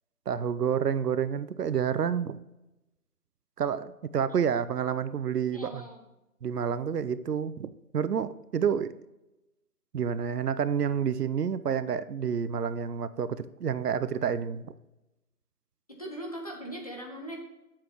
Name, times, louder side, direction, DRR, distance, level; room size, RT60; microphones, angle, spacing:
voice 1, 0.3-2.4 3.6-5.9 6.4-8.9 9.9-14.7, right 7 dB, 85° right, 14 dB, 0.7 m, -29 dB
voice 2, 4.3-4.8 5.5-6.0 15.9-17.4, right 1 dB, 25° left, -1 dB, 0.9 m, -40 dB
8.5 x 7.5 x 3.0 m, 0.97 s
figure-of-eight pair, 170°, 46 cm